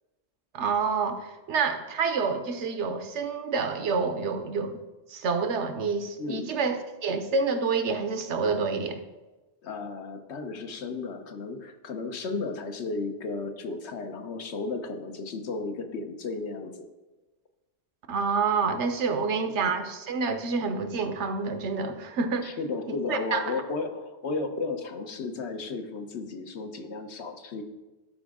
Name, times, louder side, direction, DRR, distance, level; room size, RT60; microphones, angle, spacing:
voice 1, 0.5-4.8 5.1-9.0 18.1-22.6 22.9-23.4, right 5 dB, 85° right, 7 dB, 1.1 m, -28 dB
voice 2, 6.2-6.5 9.6-16.7 19.5-19.6 21.9-22.0 22.4-27.6, left 3 dB, 75° left, 6 dB, 1.1 m, -34 dB
12.5 x 5.0 x 3.5 m, 1.1 s
omnidirectional pair, 1.1 m